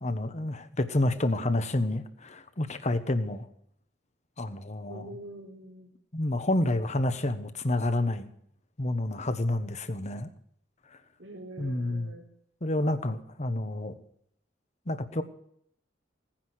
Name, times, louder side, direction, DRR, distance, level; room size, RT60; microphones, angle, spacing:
voice 1, 0.0-3.4 4.4-5.0 6.1-8.3 8.8-10.3 11.6-12.1 12.6-14.0 14.9-15.2, left 1 dB, 40° left, 10 dB, 1.2 m, -29 dB
voice 2, 4.9-5.9 11.2-12.3, right 1 dB, 85° right, -6 dB, 4.3 m, -45 dB
17.5 x 10.5 x 6.4 m, 0.69 s
head